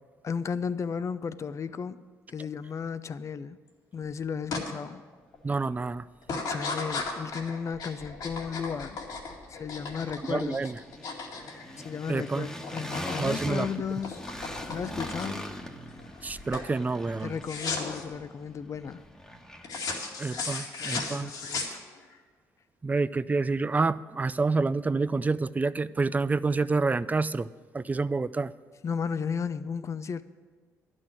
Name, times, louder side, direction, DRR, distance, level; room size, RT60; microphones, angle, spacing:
voice 1, 0.2-2.0 2.3-3.6 3.9-5.0 6.5-9.0 9.5-10.6 11.8-14.3 14.7-15.6 17.2-19.0 20.8-21.8 28.8-30.2, left 6 dB, 45° left, 0.6 m, -34 dB
sound 1, 4.5-4.7 5.1-5.6 6.2-12.3 12.5-13.3 13.5-15.5 16.0-16.3 16.5-16.7 17.4-18.0 19.6-22.2, left 4 dB, 70° left, 2.2 m, -35 dB
voice 2, 5.4-6.0 10.2-10.8 12.1-12.5 13.2-13.7 16.2-17.3 20.2-21.3 22.8-28.5, right 3 dB, 20° right, 0.4 m, -28 dB
sound 2, 5.9-6.0 6.3-7.4 7.7-19.9, left 1 dB, 10° left, 1.3 m, -42 dB
11.5 x 6.3 x 9.1 m
supercardioid pair, 70°, 7 cm